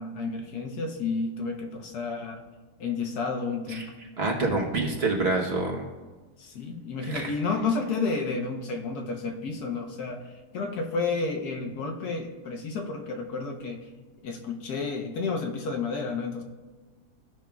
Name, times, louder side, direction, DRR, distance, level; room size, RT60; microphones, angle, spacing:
voice 1, 0.0-2.4 2.8-3.9 6.4-10.2 10.5-13.8 14.2-16.4, left 4 dB, 80° left, 3 dB, 1.4 m, -31 dB
voice 2, 4.2-5.8 7.1-7.3, right 3 dB, 45° right, 0 dB, 1.1 m, -27 dB
15.0 x 5.3 x 2.3 m, 1.3 s
omnidirectional pair, 1.6 m